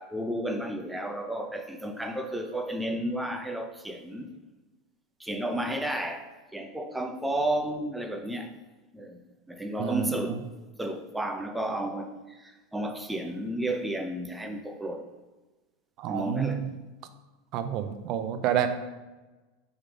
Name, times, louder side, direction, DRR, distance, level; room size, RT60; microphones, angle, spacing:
voice 1, 0.0-4.3 5.2-8.5 8.9-9.2 9.5-10.4 10.8-15.1 16.1-16.6, right 1 dB, 5° right, 5 dB, 0.7 m, -32 dB
voice 2, 9.8-10.3 16.0-16.7 17.5-18.7, right 9 dB, 50° right, 9 dB, 0.6 m, -29 dB
5.5 x 3.6 x 5.2 m, 1.2 s
hypercardioid pair, 105°, 0 cm